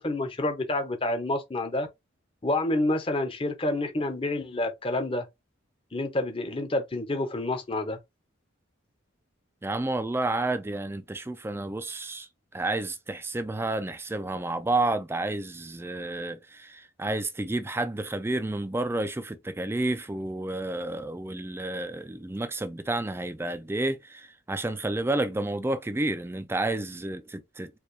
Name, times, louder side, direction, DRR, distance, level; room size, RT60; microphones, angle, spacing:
voice 1, 0.0-1.9 2.4-5.3 5.9-8.0, left 2 dB, 25° left, 0.7 m, -28 dB
voice 2, 9.6-27.8, right 2 dB, 10° right, 0.3 m, -30 dB
4.6 x 2.4 x 3.2 m
head